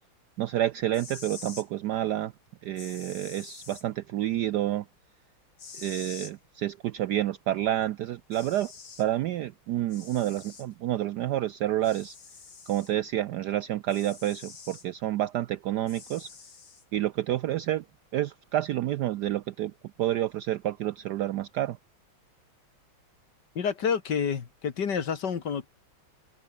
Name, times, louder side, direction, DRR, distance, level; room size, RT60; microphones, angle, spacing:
voice 1, 0.4-2.3 2.6-4.8 5.7-8.7 9.0-12.2 12.7-16.3 16.9-17.8 18.1-19.7 20.0-21.8, right 13 dB, 75° right, 0.9 m, -29 dB
sound 1, 0.8-1.7 2.8-3.8 5.6-6.3 7.8-7.9 8.3-9.1 9.9-10.7 11.8-12.9 13.9-14.9 15.9-16.8, left 5 dB, 80° left, 4.3 m, -46 dB
voice 2, 23.6-25.7, left 6 dB, 55° left, 2.2 m, -29 dB
omnidirectional pair, 2.3 m